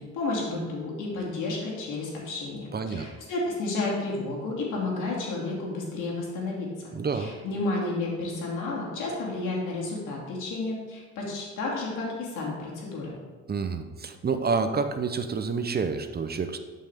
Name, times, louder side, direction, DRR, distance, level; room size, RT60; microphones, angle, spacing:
voice 1, 0.0-13.1, left 2 dB, 85° left, -3 dB, 2.7 m, -31 dB
voice 2, 2.7-3.1 6.9-7.3 13.5-16.6, right 5 dB, 30° right, 8 dB, 0.7 m, -28 dB
11.5 x 5.6 x 3.6 m, 1.4 s
cardioid pair, 90°, 30 cm